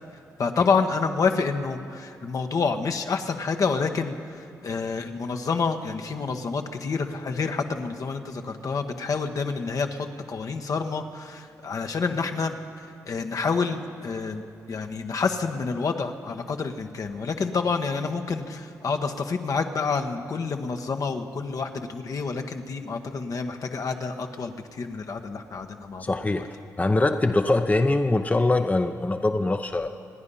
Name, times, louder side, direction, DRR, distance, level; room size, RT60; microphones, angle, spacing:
voice 1, 0.4-26.4, left 4 dB, 60° left, 5 dB, 1.2 m, -28 dB
voice 2, 26.0-26.5 26.8-29.9, left 2 dB, 25° left, 7 dB, 0.8 m, -23 dB
26.5 x 9.8 x 5.5 m, 2.7 s
supercardioid pair, 50°, 7 cm